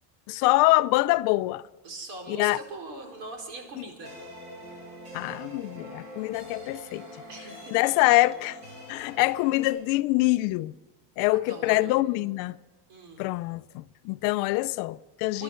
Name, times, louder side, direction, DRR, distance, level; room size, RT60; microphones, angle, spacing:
voice 1, 0.3-1.6 2.3-2.6 3.8-3.9 5.1-7.1 7.7-8.6 8.9-10.7 11.2-12.6 13.2-15.4, left 20 dB, 45° left, 0.5 m, -25 dB
voice 2, 1.8-4.1 7.3-7.7 11.3-12.3 12.9-13.2 15.3-15.4, right 2 dB, 55° right, 4.3 m, -41 dB
sound 1, 4.0-9.7, equal, 35° right, 6.5 m, -44 dB
26.5 x 11.5 x 4.4 m
supercardioid pair, 155°, 47 cm